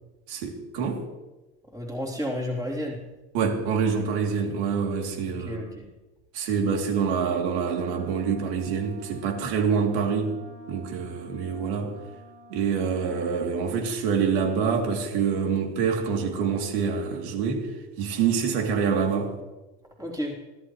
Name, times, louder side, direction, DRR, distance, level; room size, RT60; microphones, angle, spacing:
voice 1, 0.3-1.1 3.3-5.6 6.3-10.4 10.7-11.9 12.5-17.7 18.0-19.3, right 6 dB, 70° right, 3.0 m, -26 dB
voice 2, 1.7-3.0 5.3-5.9 20.0-20.4, left 1 dB, 10° right, 3.4 m, -31 dB
Wind instrument woodwind instrument, 7.5-13.5, left 1 dB, 85° right, 5.4 m, -48 dB
24.5 x 14.0 x 3.2 m
cardioid pair, 165°, 33 cm